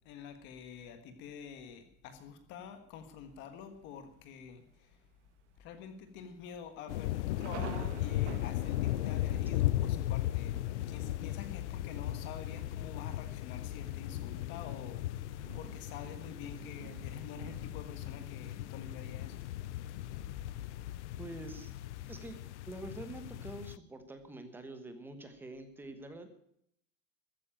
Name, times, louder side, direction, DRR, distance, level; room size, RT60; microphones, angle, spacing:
voice 1, 0.0-5.0 5.6-19.4, left 7 dB, 30° left, 9 dB, 1.4 m, -48 dB
Thunder, 3.2-3.8 4.3-4.4 4.7-5.1 5.5-5.6 6.3-22.5, right 11 dB, 65° right, 1.5 m, -53 dB
sound 1, 6.9-23.8, left 14 dB, 60° left, 0.6 m, -37 dB
voice 2, 21.2-21.7 22.1-22.4 22.7-26.3, right 2 dB, 5° right, 7 dB, 1.2 m, -46 dB
14.5 x 9.6 x 8.9 m, 0.71 s
supercardioid pair, 175°, 39 cm